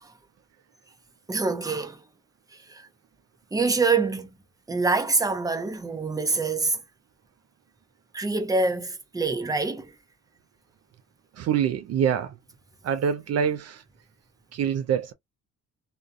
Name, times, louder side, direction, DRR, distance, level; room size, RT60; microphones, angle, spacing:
voice 1, 1.3-2.0 2.7-2.9 3.5-4.3 4.7-6.8 8.1-9.9, right 3 dB, 10° right, 0.6 m, -25 dB
voice 2, 11.4-12.3 12.8-13.8 14.5-15.1, right 8 dB, 55° right, 0.4 m, -25 dB
2.3 x 2.1 x 2.5 m
cardioid pair, 90°, 30 cm